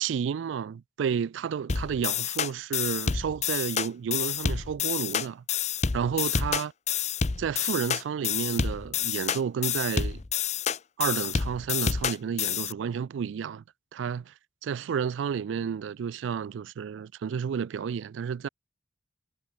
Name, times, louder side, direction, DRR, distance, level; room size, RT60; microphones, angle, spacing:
voice 1, 0.0-5.4 5.9-6.7 7.4-10.2 11.0-13.6 13.9-14.3 14.6-18.5, right 7 dB, 80° right, 0.3 m, -31 dB
sound 1, 1.7-12.7, left 7 dB, 35° left, 0.6 m, -28 dB
head